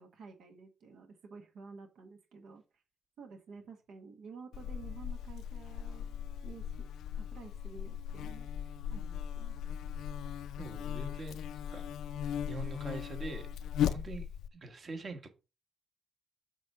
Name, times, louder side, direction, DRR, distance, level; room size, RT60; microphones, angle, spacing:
voice 1, 0.0-2.6 3.2-6.9 7.1-9.5, right 5 dB, 80° right, 1.5 m, -51 dB
Buzz, 4.5-14.5, left 9 dB, 85° left, 0.5 m, -38 dB
voice 2, 10.6-11.4 11.7-11.9 12.5-13.5 13.8-15.3, right 3 dB, 45° right, 1.6 m, -43 dB
7.4 x 3.3 x 6.0 m
cardioid pair, 70°, 0 cm